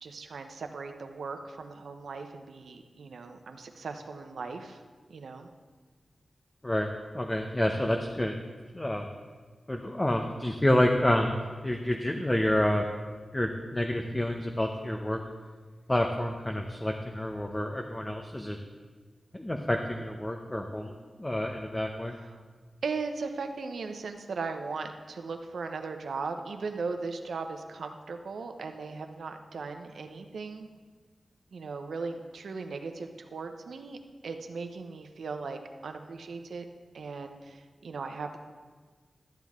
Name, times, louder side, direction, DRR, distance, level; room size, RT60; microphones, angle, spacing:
voice 1, 0.0-4.8 5.1-5.5 22.1-22.4 22.8-30.7 31.5-34.0 34.2-36.6 36.9-38.4, right 4 dB, 90° right, 6 dB, 0.7 m, -38 dB
voice 2, 6.6-8.4 8.7-9.1 9.7-12.8 13.3-15.2 15.9-18.6 19.3-20.9 21.2-22.2, left 1 dB, 20° left, 3 dB, 0.7 m, -28 dB
13.0 x 7.4 x 3.6 m, 1.5 s
wide cardioid pair, 75°, 0 cm